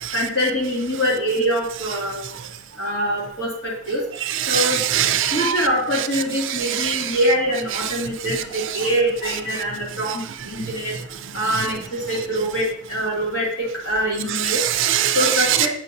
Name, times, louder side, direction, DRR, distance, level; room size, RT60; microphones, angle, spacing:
voice 1, 0.1-2.2 2.8-4.0 4.5-4.8 5.3-10.9 11.3-14.6 15.1-15.7, equal, 65° left, -4 dB, 2.3 m, -24 dB
voice 2, 4.3-5.7 6.4-7.2 8.3-8.6 14.3-15.7, right 10 dB, 65° right, 10 dB, 0.5 m, -22 dB
7.2 x 5.5 x 2.6 m, 0.70 s
head